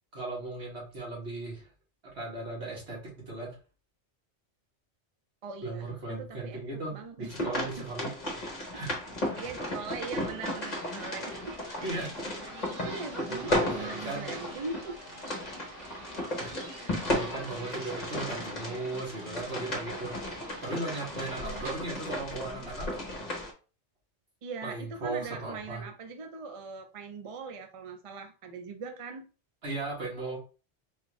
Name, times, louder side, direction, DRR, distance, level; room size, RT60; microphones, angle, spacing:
voice 1, 0.1-1.7 2.1-3.5 5.6-8.1 8.7-8.9 9.2-9.5 11.8-12.1 13.3-14.3 16.4-20.1 20.6-22.9 24.6-25.8 29.6-30.4, right 2 dB, 65° right, -4 dB, 1.9 m, -37 dB
voice 2, 5.4-6.6 6.9-7.7 8.7-8.8 9.3-11.6 12.4-12.5 12.8-15.0 16.7-17.0 17.3-17.4 18.3-18.6 21.4-21.6 24.4-29.2, right 4 dB, 45° right, 6 dB, 0.4 m, -41 dB
sound 1, 7.3-23.5, left 1 dB, 40° left, 1.1 m, -35 dB
sound 2, 10.4-21.8, right 2 dB, 85° right, 1.3 m, -46 dB
4.2 x 2.6 x 3.1 m, 0.35 s
omnidirectional pair, 1.2 m